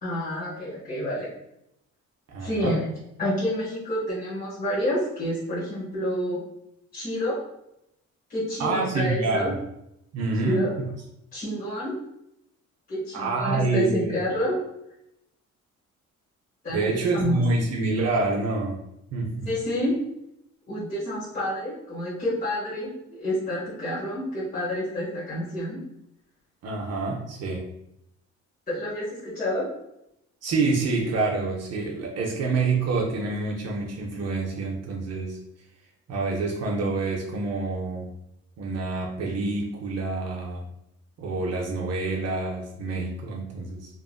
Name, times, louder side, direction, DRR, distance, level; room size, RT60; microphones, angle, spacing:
voice 1, 0.0-1.3 2.4-2.8 3.2-6.4 6.9-7.4 8.3-9.5 10.4-10.7 11.3-11.9 12.9-14.6 16.6-17.4 19.4-19.9 20.7-25.8 28.7-29.6, equal, 30° left, -10 dB, 1.3 m, -28 dB
voice 2, 2.3-2.8 8.6-9.5 10.1-10.9 13.1-14.2 16.7-18.8 19.1-19.5 26.6-27.7 30.4-35.4 36.1-38.1 38.6-40.6 41.2-43.9, right 3 dB, 55° right, -1 dB, 0.6 m, -27 dB
2.8 x 2.4 x 2.3 m, 0.82 s
cardioid pair, 90°, 30 cm